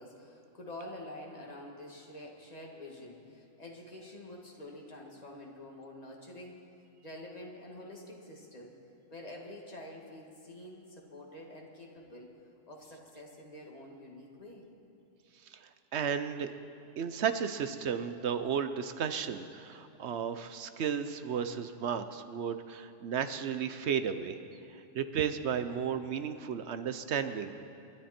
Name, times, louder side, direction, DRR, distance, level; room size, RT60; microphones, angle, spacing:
voice 1, 0.0-6.5 7.0-8.7 9.1-12.3 12.7-14.6, left 1 dB, 30° left, -1 dB, 2.1 m, -47 dB
voice 2, 15.5-16.5 17.0-24.4 24.7-27.5, right 7 dB, 65° right, 10 dB, 1.0 m, -34 dB
29.0 x 11.0 x 4.4 m, 2.7 s
omnidirectional pair, 1.3 m